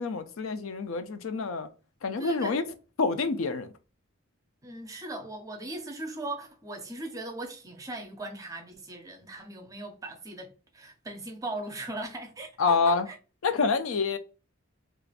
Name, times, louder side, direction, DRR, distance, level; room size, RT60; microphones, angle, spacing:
voice 1, 0.0-1.7 2.0-2.6 3.0-3.7 12.6-13.1 13.4-14.2, left 4 dB, 75° left, 0.5 m, -27 dB
voice 2, 2.2-2.6 4.6-13.2, right 2 dB, 15° right, 0.5 m, -39 dB
4.7 x 2.4 x 2.4 m
head